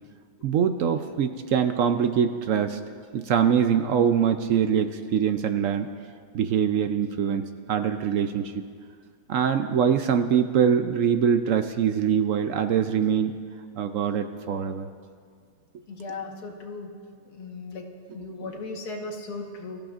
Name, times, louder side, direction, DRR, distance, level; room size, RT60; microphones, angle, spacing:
voice 1, 0.4-2.8 3.1-5.9 6.3-8.5 9.3-13.3 13.8-14.9, right 8 dB, 65° right, 8 dB, 0.9 m, -23 dB
voice 2, 15.9-16.9 17.3-17.9 18.1-19.8, left 3 dB, 80° left, 1 dB, 1.9 m, -36 dB
24.0 x 14.0 x 2.5 m, 2.1 s
omnidirectional pair, 1.7 m